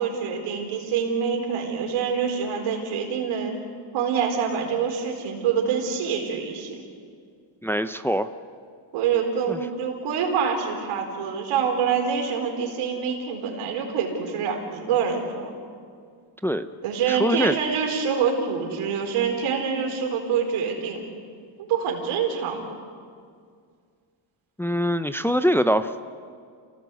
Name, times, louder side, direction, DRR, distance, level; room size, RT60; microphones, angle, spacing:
voice 1, 0.0-3.5 3.9-6.8 8.9-15.5 16.8-21.0 21.6-22.6, right 6 dB, 90° right, 2 dB, 4.3 m, -26 dB
voice 2, 7.6-8.3 9.5-9.6 16.4-16.7 17.1-17.6 24.6-26.1, equal, 5° left, 10 dB, 0.7 m, -23 dB
28.0 x 17.0 x 8.2 m, 2.2 s
cardioid pair, 105°, 47 cm